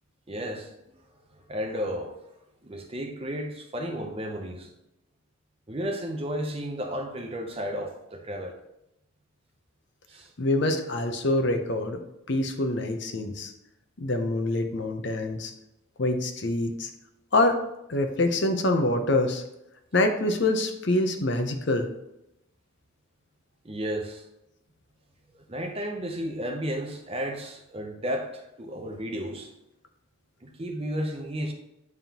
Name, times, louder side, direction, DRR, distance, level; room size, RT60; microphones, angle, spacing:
voice 1, 0.3-0.7 1.3-2.2 2.6-4.7 5.7-8.6 10.1-10.3 23.6-24.2 25.3-29.5 30.4-31.5, equal, 25° right, 3 dB, 0.6 m, -33 dB
voice 2, 10.4-12.0 12.3-13.5 14.0-15.5 16.0-16.9 17.3-17.6 17.9-19.4 19.9-21.9, left 2 dB, 55° left, 6 dB, 0.7 m, -25 dB
9.3 x 3.6 x 2.9 m, 0.86 s
head